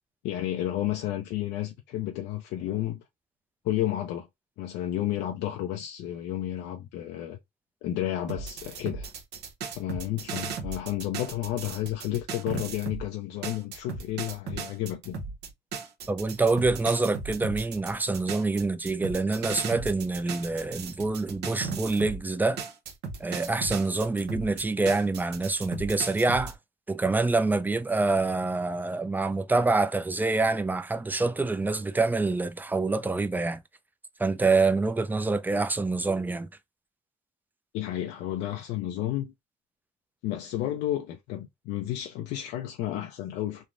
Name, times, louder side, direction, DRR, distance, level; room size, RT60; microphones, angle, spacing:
voice 1, 0.2-3.0 3.6-4.3 4.6-7.4 7.8-9.1 9.8-15.2 37.7-39.3 40.2-43.6, left 13 dB, 85° left, 0.4 m, -31 dB
sound 1, 8.3-13.1 13.4-22.2 22.6-26.5, right 5 dB, 80° right, 0.8 m, -36 dB
voice 2, 16.1-22.6 23.2-26.5 26.9-33.6 34.2-36.5, right 3 dB, 10° right, 0.3 m, -26 dB
3.3 x 2.1 x 2.5 m
cardioid pair, 110°, 17 cm